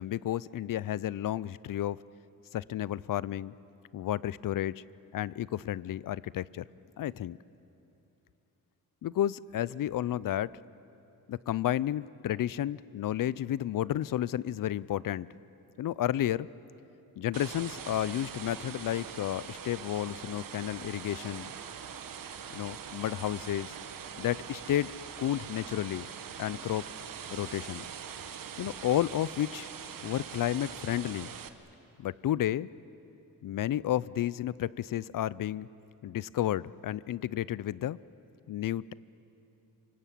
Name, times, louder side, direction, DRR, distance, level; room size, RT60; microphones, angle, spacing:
voice 1, 0.0-2.0 2.5-3.5 3.9-4.8 5.1-6.6 7.0-7.4 9.0-10.6 11.3-15.3 15.8-16.5 17.2-21.5 22.5-23.7 24.2-26.1 26.4-26.9 27.3-27.8 28.6-29.7 30.0-31.3 32.0-32.7 33.4-35.7 36.0-38.0 38.5-38.9, left 12 dB, 70° left, 20 dB, 0.5 m, -32 dB
sound 1, 17.3-31.5, right 8 dB, 70° right, 1.3 m, -43 dB
27.0 x 24.5 x 8.5 m, 2.9 s
wide cardioid pair, 160°, 34 cm